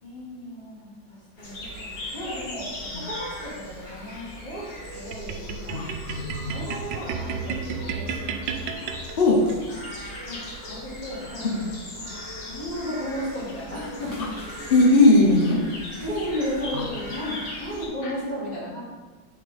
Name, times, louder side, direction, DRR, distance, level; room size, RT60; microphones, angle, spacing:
voice 1, 0.0-4.7 4.9-5.8 6.4-9.0 10.3-11.5 11.9-12.1 12.5-14.2 16.0-18.8, equal, 20° left, -8 dB, 2.4 m, -34 dB
sound 1, 1.4-17.9, left 1 dB, 40° left, 1.0 m, -39 dB
sound 2, 5.1-9.6, right 5 dB, 75° right, 1.2 m, -33 dB
voice 2, 6.1-6.5 9.2-9.4 11.5-11.6 14.7-15.6 16.7-16.8 18.0-18.1, left 2 dB, 85° left, 0 dB, 0.5 m, -18 dB
8.5 x 3.7 x 3.9 m, 1.3 s
omnidirectional pair, 2.1 m